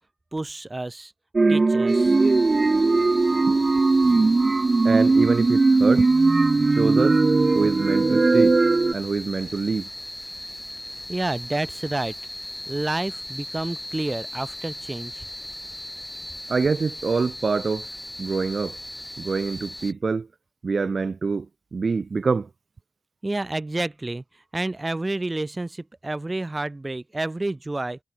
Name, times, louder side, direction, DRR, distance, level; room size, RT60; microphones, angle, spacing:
voice 1, 0.3-1.1 1.5-2.1 11.1-12.1 12.7-15.2 23.2-24.2 24.5-28.0, right 2 dB, 35° right, 0.9 m, -29 dB
sound 1, 1.3-8.9, right 3 dB, 55° right, 0.4 m, -19 dB
sound 2, 1.9-19.9, left 1 dB, 15° left, 2.0 m, -38 dB
voice 2, 4.8-6.1 6.8-7.2 7.5-8.6 8.9-9.9 16.5-17.9 18.2-18.8 19.2-20.3 20.6-21.5 21.7-22.5, right 4 dB, 80° right, 0.8 m, -25 dB
cardioid pair, 50°, 0 cm